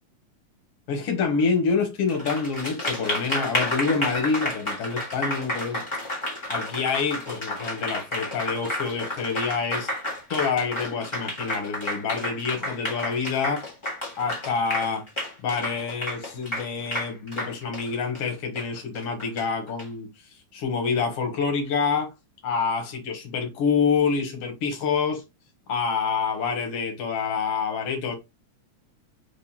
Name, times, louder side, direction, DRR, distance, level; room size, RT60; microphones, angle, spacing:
voice 1, 0.9-5.8 6.5-9.9 10.3-13.7 14.2-15.0 15.4-20.1 20.5-22.1 22.4-25.2 25.7-28.1, left 5 dB, 65° left, 1.8 m, -27 dB
Applause, 2.1-19.8, left 1 dB, 15° left, 1.0 m, -31 dB
4.5 x 3.5 x 2.8 m
omnidirectional pair, 3.4 m